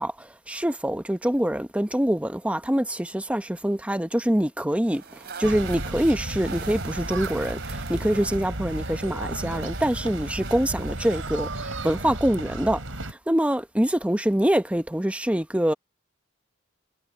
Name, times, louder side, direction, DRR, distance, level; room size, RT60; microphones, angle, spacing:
voice 1, 0.0-5.0 5.4-12.8 13.3-15.7, right 1 dB, 5° right, 0.9 m, -25 dB
sound 1, 4.8-12.2, right 4 dB, 55° right, 3.6 m, -41 dB
sound 2, 5.4-13.1, right 1 dB, 75° right, 6.4 m, -33 dB
head